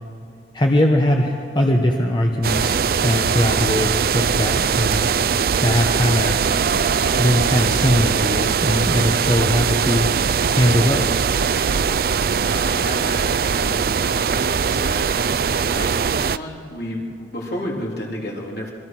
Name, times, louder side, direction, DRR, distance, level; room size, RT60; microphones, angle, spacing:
voice 1, 0.5-5.1 5.6-6.4 6.8-10.1 10.5-11.3, left 1 dB, 25° left, 1 dB, 1.3 m, -20 dB
sound 1, 2.4-16.4, right 6 dB, 55° right, 0.4 m, -20 dB
voice 2, 12.4-15.1 15.6-18.7, left 1 dB, 60° left, -2 dB, 3.5 m, -32 dB
26.5 x 22.5 x 6.1 m, 2.5 s
head